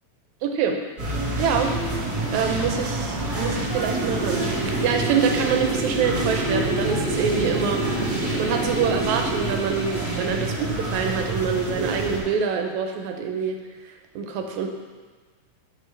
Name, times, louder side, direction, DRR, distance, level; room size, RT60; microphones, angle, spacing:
voice 1, 0.4-0.8 1.4-1.7 2.3-7.8 8.4-13.6 14.2-14.7, right 6 dB, 80° right, 4 dB, 1.9 m, -25 dB
sound 1, 1.0-12.2, right 2 dB, 35° right, 1.8 m, -28 dB
sound 2, 4.0-9.6, right 3 dB, 30° left, 0.9 m, -30 dB
sound 3, 4.8-10.3, left 2 dB, 75° left, 1.3 m, -41 dB
7.6 x 5.4 x 3.2 m, 1.4 s
omnidirectional pair, 3.4 m